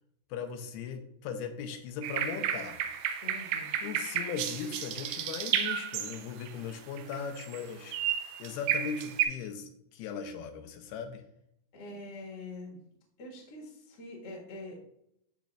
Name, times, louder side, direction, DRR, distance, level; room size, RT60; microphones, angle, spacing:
voice 1, 0.3-2.8 3.8-8.0 8.4-11.2, left 6 dB, 90° left, 6 dB, 2.6 m, -38 dB
sound 1, 2.0-6.5 7.0-7.6 7.9-9.3, right 10 dB, 80° right, 2.0 m, -32 dB
voice 2, 3.2-3.7 11.7-12.8 13.2-14.8, left 2 dB, 45° left, -3 dB, 1.3 m, -44 dB
12.0 x 4.1 x 2.4 m, 0.75 s
omnidirectional pair, 4.5 m